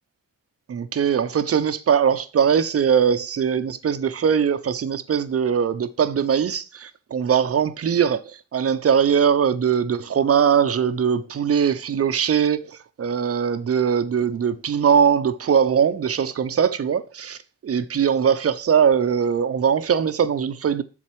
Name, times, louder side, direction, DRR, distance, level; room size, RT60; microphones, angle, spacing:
voice 1, 0.7-20.8, right 7 dB, 45° right, 0.8 m, -21 dB
7.3 x 4.0 x 4.6 m
supercardioid pair, 50°, 34 cm